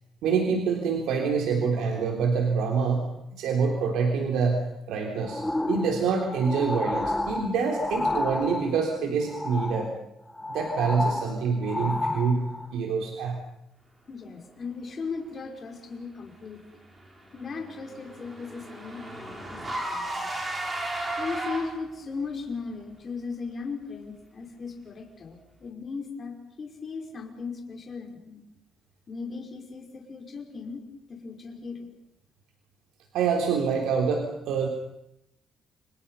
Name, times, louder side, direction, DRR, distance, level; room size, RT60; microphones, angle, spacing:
voice 1, 0.2-9.9 10.5-13.4 33.1-34.7, right 5 dB, 85° right, 2 dB, 3.6 m, -26 dB
sound 1, 5.2-8.9 9.3-10.0 10.3-12.7 13.3-13.4, left 2 dB, 10° left, 1.1 m, -31 dB
voice 2, 14.1-16.6 17.3-20.3 21.2-28.4 29.1-30.8 31.1-31.9, left 4 dB, 30° left, 2 dB, 5.1 m, -37 dB
Car / Engine, 17.0-22.0, right 1 dB, 20° right, 5.5 m, -34 dB
30.0 x 26.0 x 5.6 m, 0.81 s
cardioid pair, 155°, 0 cm